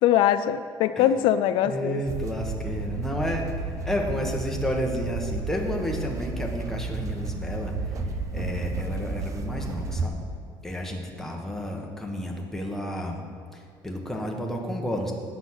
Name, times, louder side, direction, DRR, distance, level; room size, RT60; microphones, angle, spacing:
voice 1, 0.0-2.0, left 11 dB, 75° left, 11 dB, 0.3 m, -22 dB
voice 2, 1.6-10.2 10.6-13.2 13.5-15.1, equal, 5° left, 0 dB, 1.2 m, -31 dB
sound 1, 2.1-10.1, right 3 dB, 40° right, 0.6 m, -32 dB
7.9 x 6.0 x 7.9 m, 2.2 s
cardioid pair, 130°, 8 cm